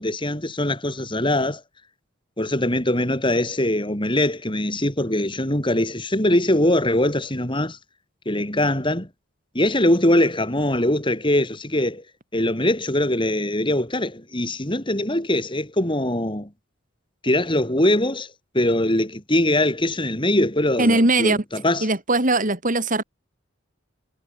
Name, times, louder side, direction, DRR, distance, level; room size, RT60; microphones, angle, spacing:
voice 1, 0.0-1.6 2.4-7.8 8.3-9.1 9.5-12.0 12.3-16.5 17.2-18.3 18.5-21.9, left 1 dB, 25° left, 4.5 m, -22 dB
voice 2, 20.8-21.4 21.8-23.0, right 2 dB, 40° right, 4.7 m, -20 dB
head